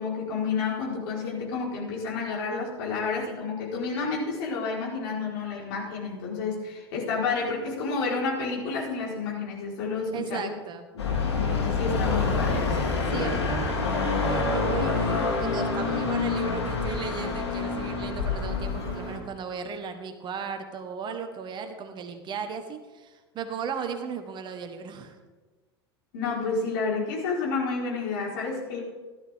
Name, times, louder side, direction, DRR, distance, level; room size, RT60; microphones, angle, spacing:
voice 1, 0.0-10.5 11.3-12.9 26.1-28.8, left 4 dB, 60° left, -4 dB, 4.6 m, -30 dB
voice 2, 10.1-10.9 13.1-25.1, right 6 dB, 35° right, 7 dB, 1.4 m, -36 dB
sound 1, 11.0-19.2, left 4 dB, 75° left, 2.4 m, -27 dB
15.5 x 12.5 x 3.7 m, 1.3 s
figure-of-eight pair, 80°, 14 cm